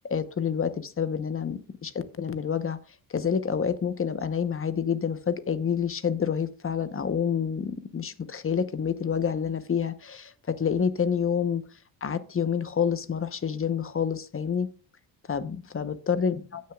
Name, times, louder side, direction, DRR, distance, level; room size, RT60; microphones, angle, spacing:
voice 1, 0.0-2.8 3.1-11.6 12.0-14.7 15.3-16.7, left 7 dB, 30° left, 12 dB, 1.0 m, -28 dB
16.0 x 6.5 x 2.4 m, 0.37 s
cardioid pair, 75°, 43 cm